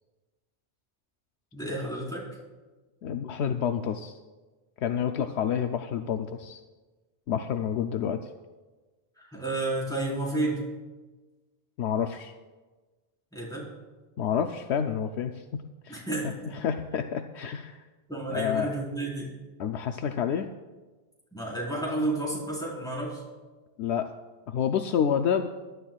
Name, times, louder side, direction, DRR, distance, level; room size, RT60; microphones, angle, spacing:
voice 1, 1.5-2.2 9.2-10.6 13.3-13.7 15.9-16.5 18.1-19.3 21.3-23.2, right 2 dB, 5° left, -5 dB, 4.2 m, -31 dB
voice 2, 3.0-4.2 4.8-6.6 7.3-8.3 11.8-12.3 14.2-16.1 16.5-17.8 18.3-18.8 19.6-20.5 23.8-24.1 24.5-25.5, left 8 dB, 80° left, 6 dB, 0.9 m, -29 dB
23.0 x 11.5 x 2.4 m, 1.3 s
omnidirectional pair, 1.1 m